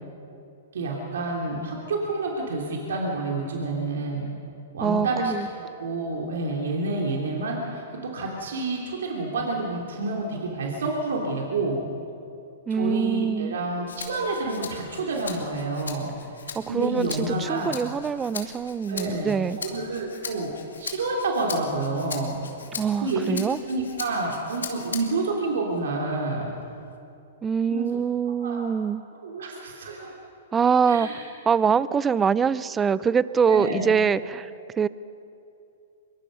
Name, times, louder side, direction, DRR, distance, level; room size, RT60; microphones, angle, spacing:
voice 1, 0.7-4.3 4.7-5.3 5.8-11.8 12.7-16.1 16.7-17.8 18.9-20.5 20.8-22.4 23.0-26.5 27.7-27.9 28.4-28.6 29.2-30.1 30.8-31.2 33.5-34.0, right 2 dB, 70° right, -1 dB, 3.2 m, -29 dB
voice 2, 4.8-5.5 12.7-13.6 16.6-19.6 22.8-23.6 27.4-29.0 30.5-31.1 31.5-34.5 34.8-34.9, right 6 dB, 15° right, 18 dB, 0.6 m, -24 dB
Rattle (instrument), 13.9-25.3 25.8-27.0, left 5 dB, 80° left, 2.4 m, -39 dB
25.0 x 23.0 x 5.5 m, 2.7 s
hypercardioid pair, 115°, 0 cm